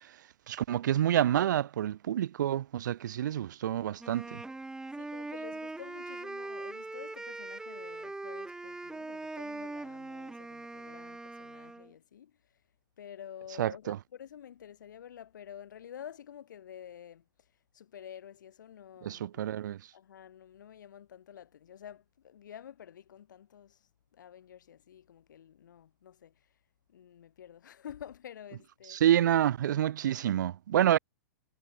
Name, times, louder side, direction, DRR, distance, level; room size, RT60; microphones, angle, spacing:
voice 1, 0.5-4.4 13.6-14.0 19.0-19.8 28.9-31.0, right 11 dB, 70° right, 0.7 m, -28 dB
Wind instrument woodwind instrument, 4.0-11.9, right 2 dB, 5° right, 1.2 m, -41 dB
voice 2, 4.9-12.6 13.0-19.5 19.9-26.6 26.9-29.0, left 9 dB, 75° left, 6.6 m, -50 dB
hypercardioid pair, 115°, 10 cm